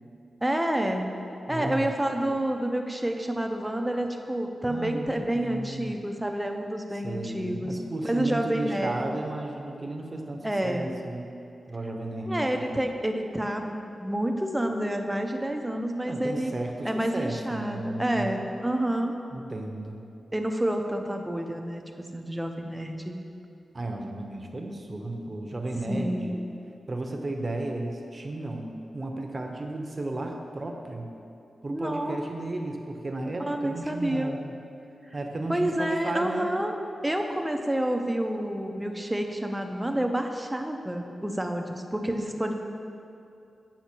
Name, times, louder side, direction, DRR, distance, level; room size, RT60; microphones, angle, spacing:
voice 1, 0.4-1.1 1.5-9.1 10.4-10.9 12.3-16.5 16.8-19.1 20.3-21.8 22.1-23.2 25.7-26.3 31.7-32.2 33.4-34.3 35.5-36.8 37.0-42.6, right 1 dB, 10° right, 4 dB, 0.6 m, -29 dB
voice 2, 1.5-1.9 2.2-2.4 4.6-5.9 6.9-11.3 11.7-12.7 16.1-18.5 19.3-20.0 23.7-26.3 26.9-28.7 28.9-31.1 31.6-34.5 35.1-36.5, right 2 dB, 35° right, 2 dB, 0.8 m, -34 dB
8.4 x 5.7 x 4.5 m, 2.6 s
wide cardioid pair, 100°, 0 cm